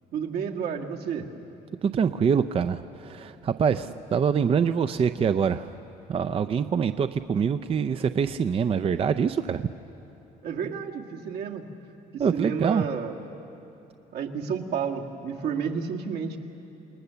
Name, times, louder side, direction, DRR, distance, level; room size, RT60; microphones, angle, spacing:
voice 1, 0.1-1.3 10.4-11.7 12.1-13.2 14.1-16.4, right 6 dB, 70° right, 2 dB, 1.9 m, -31 dB
voice 2, 1.8-5.7 6.1-9.7 12.2-12.9, right 6 dB, 35° right, 11 dB, 0.5 m, -25 dB
28.5 x 19.5 x 6.9 m, 3.0 s
cardioid pair, 110°, 17 cm